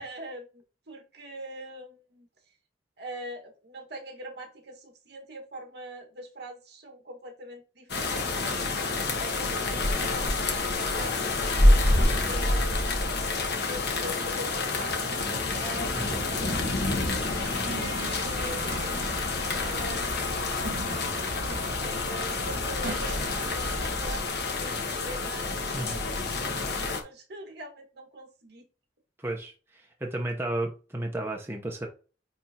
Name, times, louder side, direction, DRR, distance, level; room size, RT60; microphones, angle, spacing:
voice 1, 0.0-2.3 3.0-8.7 9.2-13.1 13.7-15.0 15.6-19.1 19.6-20.8 21.7-28.7, equal, 60° right, 1.7 m, -43 dB
sound 1, 7.9-27.0, left 2 dB, 60° left, 1.2 m, -28 dB
sound 2, 15.7-24.1, right 1 dB, 75° right, 1.8 m, -38 dB
voice 2, 29.2-29.5 30.0-31.9, right 1 dB, 15° right, 0.9 m, -32 dB
9.6 x 3.5 x 2.9 m
head